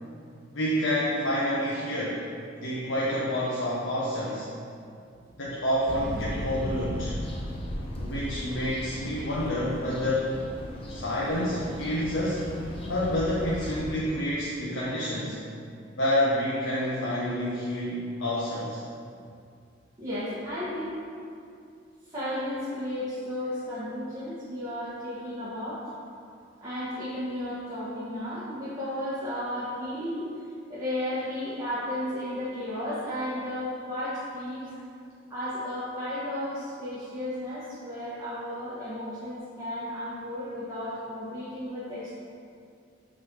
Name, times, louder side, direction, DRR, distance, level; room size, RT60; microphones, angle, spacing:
voice 1, 0.5-2.2 2.6-4.5 5.4-7.2 8.0-10.4 10.9-12.4 12.9-15.4 16.0-18.8, left 1 dB, 70° left, -7 dB, 1.0 m, -28 dB
sound 1, 5.9-13.8, equal, 30° left, 1.0 m, -36 dB
voice 2, 20.0-21.0 22.1-25.8 26.6-30.3 30.7-34.7 35.3-42.1, left 1 dB, 15° right, -13 dB, 1.6 m, -33 dB
6.3 x 4.1 x 6.3 m, 2.4 s
head